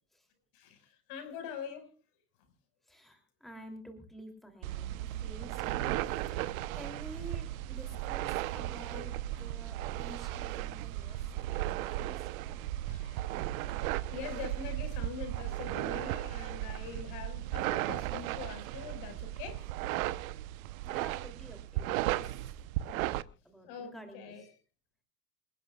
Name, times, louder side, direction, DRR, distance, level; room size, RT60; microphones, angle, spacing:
voice 1, 0.5-1.9 11.1-11.2 12.8-13.3 14.1-19.6 23.6-24.4, left 7 dB, 55° left, 5.8 m, -44 dB
voice 2, 2.8-12.6 20.8-22.6 22.8-24.5, right 1 dB, ahead, 3.1 m, -50 dB
sound 1, 4.6-23.2, right 15 dB, 55° right, 1.1 m, -36 dB
28.0 x 11.5 x 2.4 m
hypercardioid pair, 90°, 49 cm